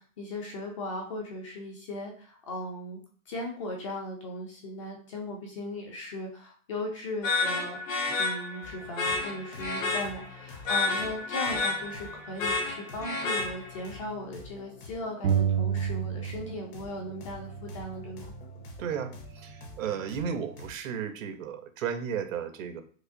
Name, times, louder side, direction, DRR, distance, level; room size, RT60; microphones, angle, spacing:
voice 1, 0.0-3.0 3.3-7.8 8.2-18.3, left 1 dB, 25° left, 1 dB, 0.4 m, -37 dB
sound 1, 7.2-14.0, left 3 dB, 80° left, 1.5 m, -31 dB
sound 2, 8.6-20.7, left 3 dB, 50° left, 1.0 m, -48 dB
sound 3, 15.2-16.7 17.0-18.8, right 8 dB, 50° right, 0.4 m, -31 dB
voice 2, 18.8-19.1 19.4-22.8, right 7 dB, 75° right, 9 dB, 0.7 m, -34 dB
4.7 x 2.1 x 2.6 m, 0.43 s
hypercardioid pair, 160°, 40 cm